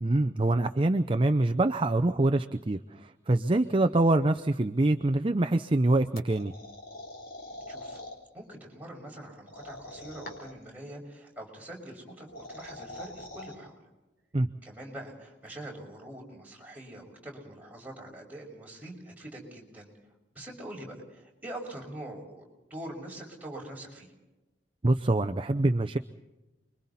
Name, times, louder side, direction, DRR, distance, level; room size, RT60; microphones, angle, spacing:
voice 1, 0.0-6.5 14.3-14.5 24.8-26.0, right 2 dB, 30° right, 8 dB, 0.6 m, -25 dB
sound 1, 6.2-8.2 9.5-10.6 12.1-13.5, left 2 dB, 55° left, 3.9 m, -44 dB
voice 2, 7.7-8.0 8.3-13.7 14.6-19.9 20.3-24.1, right 1 dB, 10° right, -2 dB, 6.1 m, -44 dB
30.0 x 23.0 x 4.3 m, 1.1 s
head